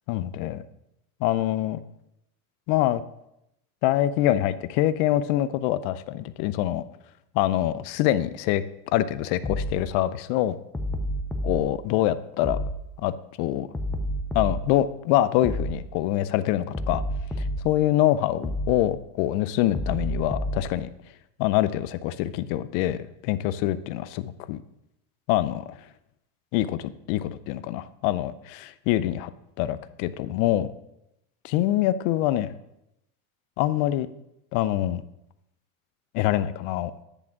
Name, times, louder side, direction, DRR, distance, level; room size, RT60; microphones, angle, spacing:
voice 1, 0.1-0.6 1.2-1.8 2.7-3.0 3.8-6.8 7.3-8.6 8.9-10.6 11.4-12.6 13.0-13.7 14.3-17.0 17.4-20.9 21.4-24.6 25.3-25.6 26.5-29.3 29.6-30.7 31.4-32.5 33.6-34.1 34.5-35.0 36.1-36.9, left 13 dB, 60° left, 14 dB, 0.6 m, -25 dB
sound 1, 9.4-9.8 10.7-11.6 12.4-12.8 13.7-14.7 15.4-15.8 16.7-17.7 18.4-18.8 19.7-20.7, equal, 5° left, 0.4 m, -29 dB
10.0 x 3.6 x 5.8 m, 0.82 s
supercardioid pair, 135°, 43 cm